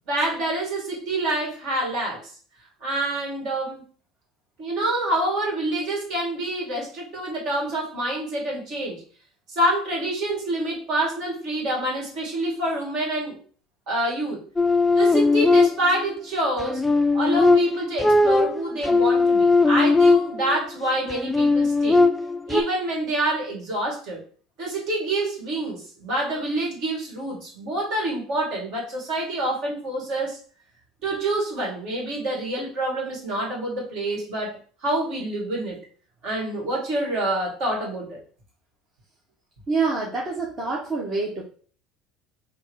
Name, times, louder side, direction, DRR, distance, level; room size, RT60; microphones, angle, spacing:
voice 1, 0.1-2.3 2.8-3.8 4.6-9.0 9.5-13.4 13.9-14.4 14.9-16.8 17.1-22.0 22.5-24.2 24.6-30.4 31.0-34.6 34.8-35.8 36.2-38.2, right 1 dB, 60° right, -2 dB, 2.1 m, -27 dB
sound 1, 14.6-16.1 16.6-20.6 21.1-22.6, left 3 dB, 10° left, 0.3 m, -19 dB
voice 2, 39.7-41.4, right 4 dB, 35° right, -3 dB, 1.1 m, -26 dB
3.6 x 2.5 x 4.6 m, 0.43 s
supercardioid pair, 105°, 0 cm